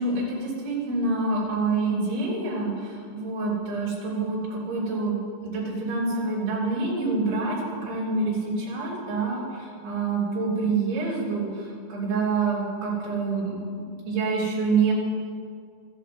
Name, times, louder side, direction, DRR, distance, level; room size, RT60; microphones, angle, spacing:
voice 1, 0.0-14.9, right 3 dB, 55° right, -6 dB, 5.1 m, -27 dB
13.5 x 8.8 x 7.8 m, 2.2 s
omnidirectional pair, 5.9 m